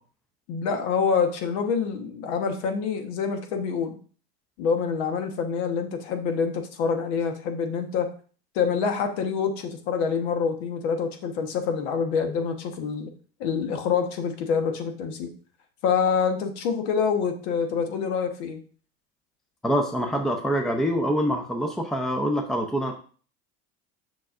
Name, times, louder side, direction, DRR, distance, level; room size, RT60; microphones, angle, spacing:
voice 1, 0.5-4.0 4.6-8.1 8.5-13.1 13.4-15.3 15.8-18.6, left 6 dB, 80° left, 6 dB, 1.3 m, -26 dB
voice 2, 19.6-22.9, equal, ahead, 4 dB, 0.5 m, -25 dB
7.2 x 6.1 x 2.5 m, 0.42 s
supercardioid pair, 125°, 33 cm